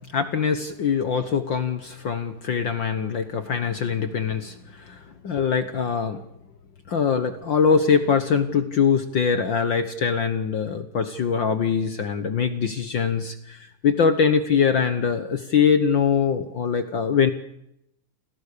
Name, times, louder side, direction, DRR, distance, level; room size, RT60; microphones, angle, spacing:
voice 1, 0.1-6.2 6.9-17.3, left 6 dB, 70° left, 10 dB, 1.1 m, -23 dB
29.5 x 21.0 x 6.8 m, 0.82 s
omnidirectional pair, 3.8 m